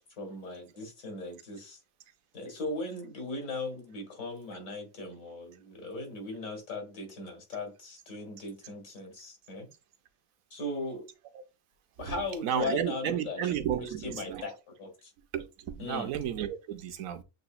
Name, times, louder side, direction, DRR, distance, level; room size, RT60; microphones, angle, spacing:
voice 1, 0.2-1.8 2.3-9.7 10.5-11.1 12.0-13.4 13.8-15.1 15.8-16.1, left 2 dB, 80° left, 2.2 m, -38 dB
voice 2, 12.0-14.4 15.3-17.2, right 9 dB, 80° right, 1.1 m, -33 dB
7.7 x 2.9 x 2.3 m
omnidirectional pair, 1.4 m